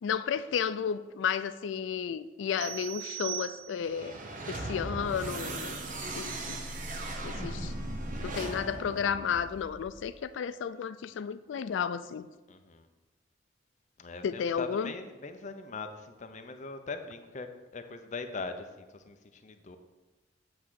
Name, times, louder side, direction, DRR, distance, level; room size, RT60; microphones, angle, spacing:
voice 1, 0.0-4.2 4.5-5.8 6.2-6.6 7.2-7.7 8.2-12.3 14.2-14.9, left 7 dB, 85° left, 14 dB, 0.3 m, -32 dB
sound 1, 2.6-4.1, right 13 dB, 75° right, 0.6 m, -39 dB
sound 2, 3.8-10.1, right 2 dB, 45° right, 0.9 m, -38 dB
voice 2, 12.5-12.9 14.0-19.8, left 4 dB, 40° left, 7 dB, 0.6 m, -41 dB
8.0 x 3.7 x 6.2 m, 1.2 s
head